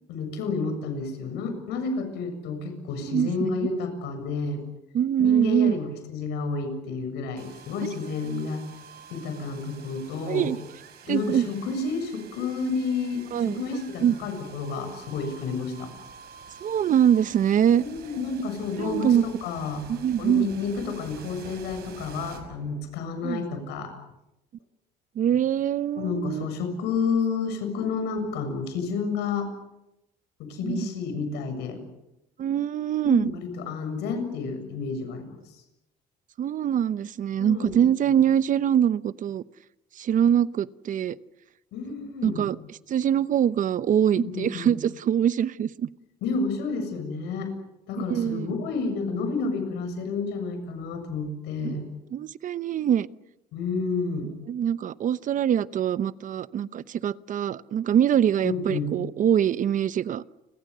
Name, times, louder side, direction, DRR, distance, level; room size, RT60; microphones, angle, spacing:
voice 1, 0.1-4.6 5.2-8.6 9.1-10.5 11.1-15.9 17.8-19.8 20.2-23.9 26.0-29.5 30.4-31.8 33.0-35.3 37.4-37.7 41.7-42.5 44.2-44.7 46.2-47.5 47.9-51.9 53.5-54.3 58.4-58.9, left 4 dB, 90° left, 7 dB, 7.1 m, -30 dB
voice 2, 3.0-3.7 4.9-5.8 10.3-10.6 11.1-11.5 13.3-13.6 14.0-14.2 16.6-17.8 18.8-19.2 19.9-20.5 23.2-23.4 25.2-26.5 30.6-30.9 32.4-33.3 36.4-39.4 39.9-41.2 42.0-45.9 48.0-48.6 51.6-51.7 52.1-53.1 54.5-60.2, right 9 dB, 50° right, 16 dB, 0.8 m, -24 dB
sound 1, 7.4-23.2, right 6 dB, 70° right, 6.1 m, -48 dB
29.5 x 23.0 x 6.8 m, 0.90 s
cardioid pair, 110°, 17 cm